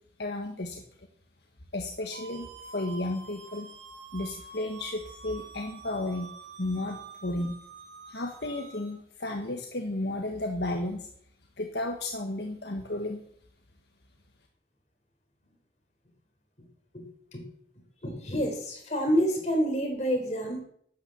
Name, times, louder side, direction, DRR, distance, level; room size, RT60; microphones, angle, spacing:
voice 1, 0.2-0.8 1.7-3.7 4.1-6.3 6.6-7.5 8.1-11.1 11.6-13.2, left 2 dB, 70° left, 2 dB, 1.6 m, -33 dB
sound 1, 2.1-8.9, right 4 dB, 80° right, 3.1 m, -47 dB
voice 2, 18.0-20.6, equal, 40° left, 3 dB, 3.9 m, -28 dB
12.0 x 9.5 x 7.2 m, 0.64 s
head